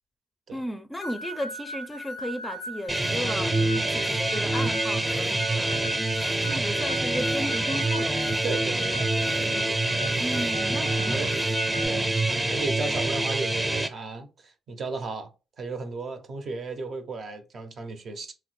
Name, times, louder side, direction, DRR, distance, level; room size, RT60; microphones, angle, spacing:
voice 1, 0.5-5.9 6.4-8.2 10.2-11.4 11.9-12.3, equal, 15° left, 0.4 m, -35 dB
sound 1, 1.0-11.9, right 1 dB, 80° left, 0.4 m, -39 dB
sound 2, 2.9-13.9, right 2 dB, 20° right, 0.7 m, -26 dB
voice 2, 8.4-9.9 10.3-10.4 11.1-11.3 11.9-12.1 12.5-15.3 15.6-18.3, right 3 dB, 60° right, 0.6 m, -35 dB
3.1 x 2.1 x 3.1 m
cardioid pair, 70°, 0 cm